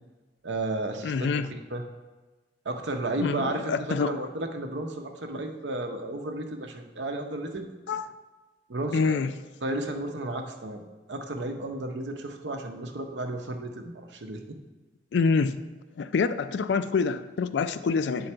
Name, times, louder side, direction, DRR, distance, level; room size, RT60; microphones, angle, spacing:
voice 1, 0.4-1.8 2.6-3.7 4.0-7.7 8.7-9.2 9.6-10.8 11.1-14.4, right 2 dB, 75° right, 5 dB, 0.7 m, -33 dB
voice 2, 1.0-1.5 3.2-4.2 7.9-8.1 8.9-9.3 15.1-15.6 16.0-18.3, left 5 dB, 70° left, 13 dB, 0.3 m, -26 dB
8.5 x 3.9 x 4.4 m, 1.2 s
head